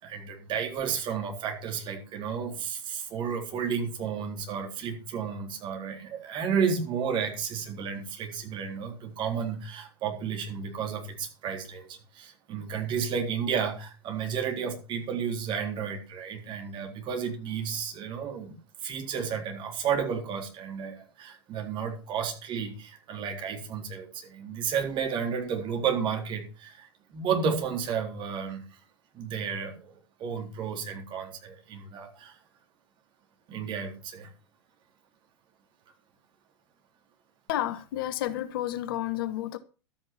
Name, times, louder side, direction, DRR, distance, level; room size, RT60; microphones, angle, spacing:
voice 1, 0.0-28.8 29.1-32.4 33.5-34.3, right 6 dB, 35° right, 3.7 m, -32 dB
voice 2, 37.5-39.6, left 13 dB, 55° left, 1.1 m, -31 dB
12.5 x 9.0 x 5.9 m
figure-of-eight pair, 90°, 15 cm